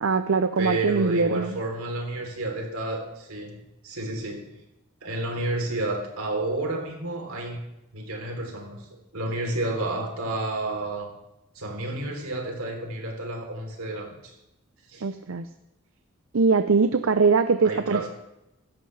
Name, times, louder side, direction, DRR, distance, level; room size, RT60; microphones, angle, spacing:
voice 1, 0.0-1.6 15.0-15.5 16.3-18.1, right 4 dB, 70° right, 10 dB, 0.6 m, -22 dB
voice 2, 0.6-3.6 3.8-4.5 5.0-7.6 7.9-8.8 9.1-11.1 11.5-14.3 14.9-15.1 17.6-18.1, right 2 dB, 85° right, 2 dB, 3.3 m, -30 dB
16.0 x 13.5 x 3.3 m, 0.91 s
head